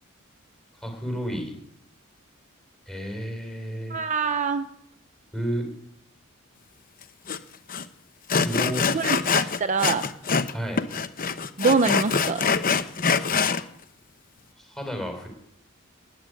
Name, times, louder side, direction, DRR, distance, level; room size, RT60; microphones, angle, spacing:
voice 1, 0.7-1.5 2.9-4.0 5.3-5.7 8.4-8.9 10.5-10.8 14.6-15.3, equal, ahead, 3 dB, 4.5 m, -31 dB
voice 2, 3.9-4.7 8.9-10.1 11.6-12.4, right 4 dB, 35° right, 8 dB, 0.6 m, -24 dB
Sawing, 7.3-7.4 7.7-7.8 8.3-10.5 10.8-13.6, left 5 dB, 40° left, 0.8 m, -24 dB
14.0 x 9.2 x 9.7 m, 0.73 s
head